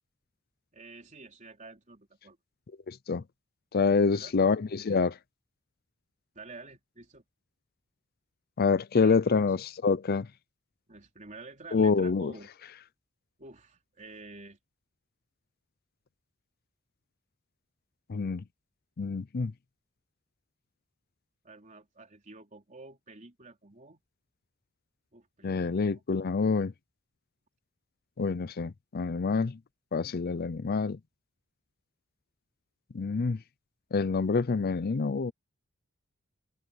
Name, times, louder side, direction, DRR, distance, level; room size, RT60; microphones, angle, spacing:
voice 1, 0.7-2.4 3.9-4.3 6.3-7.2 9.0-9.6 10.9-12.5 13.4-14.6 21.4-24.0 25.1-26.0, right 3 dB, 35° right, 3.8 m, -49 dB
voice 2, 2.9-3.2 3.7-5.2 8.6-10.3 11.7-12.3 18.1-18.4 19.0-19.5 25.4-26.7 28.2-29.6 29.9-31.0 32.9-33.4 33.9-35.3, left 4 dB, 45° left, 0.5 m, -27 dB
head